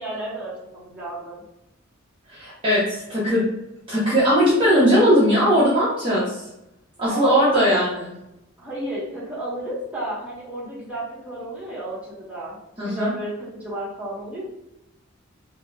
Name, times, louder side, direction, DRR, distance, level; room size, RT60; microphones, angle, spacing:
voice 1, 0.0-1.4 7.1-7.8 8.6-12.6 12.8-14.4, right 1 dB, 5° right, -8 dB, 1.0 m, -32 dB
voice 2, 2.3-3.4 3.9-6.3 7.0-8.1 12.8-13.1, equal, 25° right, -9 dB, 0.7 m, -19 dB
3.5 x 2.1 x 2.2 m, 0.88 s
head